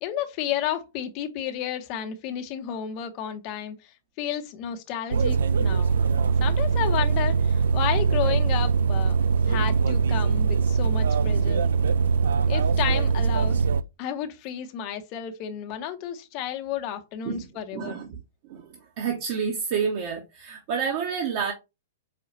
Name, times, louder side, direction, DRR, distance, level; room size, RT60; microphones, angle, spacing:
voice 1, 0.0-6.0 6.4-9.2 9.4-11.7 12.5-13.6 14.0-18.0, left 10 dB, 40° left, 0.7 m, -32 dB
sound 1, 5.1-13.8, right 5 dB, 65° right, 0.3 m, -22 dB
voice 2, 17.7-18.2 18.5-18.7 19.0-21.5, right 6 dB, 45° right, 0.8 m, -29 dB
5.0 x 2.3 x 2.8 m
figure-of-eight pair, 105°, 0 cm